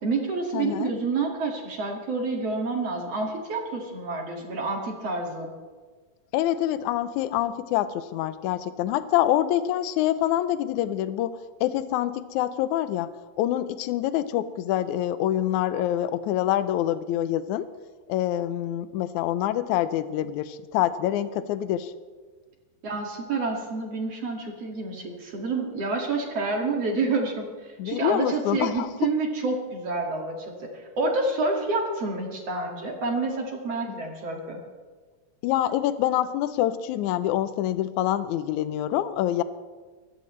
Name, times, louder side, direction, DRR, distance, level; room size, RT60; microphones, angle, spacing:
voice 1, 0.0-5.5 22.8-34.6, right 3 dB, 45° right, 0 dB, 3.0 m, -28 dB
voice 2, 0.5-0.9 6.3-13.1 13.4-17.7 18.1-21.9 27.8-28.9 35.4-39.4, left 12 dB, 85° left, 12 dB, 1.7 m, -26 dB
23.0 x 16.0 x 3.2 m, 1.4 s
omnidirectional pair, 4.2 m